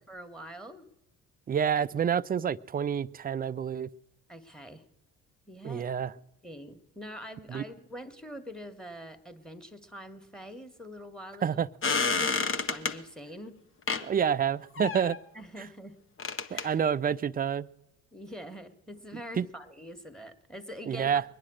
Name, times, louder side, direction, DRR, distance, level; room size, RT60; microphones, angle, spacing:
voice 1, 0.1-0.9 4.3-4.9 5.5-5.9 6.4-11.6 12.0-13.5 15.3-16.0 16.5-16.8 18.1-21.1, equal, ahead, 9 dB, 1.7 m, -44 dB
voice 2, 1.5-3.9 5.6-6.1 7.5-7.6 11.4-11.7 14.0-15.2 16.5-17.7 19.4-19.5 20.9-21.2, right 8 dB, 25° right, 17 dB, 0.4 m, -28 dB
sound 1, 11.8-13.0 13.9-14.1 14.8-15.2 16.2-16.6, left 4 dB, 35° left, 1.0 m, -29 dB
22.0 x 9.9 x 6.4 m, 0.95 s
hypercardioid pair, 55°, 38 cm